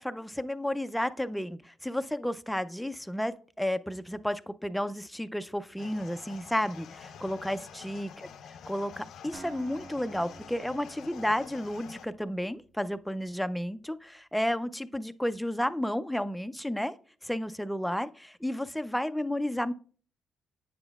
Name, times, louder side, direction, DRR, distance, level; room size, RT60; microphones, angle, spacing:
voice 1, 0.0-8.3 8.7-16.9 17.2-19.7, left 1 dB, 5° left, 12 dB, 0.3 m, -32 dB
sound 1, 5.8-12.1, left 7 dB, 75° left, 0.5 m, -48 dB
Acoustic guitar, 9.3-13.2, right 4 dB, 60° right, 0.8 m, -51 dB
7.9 x 6.9 x 2.3 m, 0.42 s
cardioid pair, 90°, 0 cm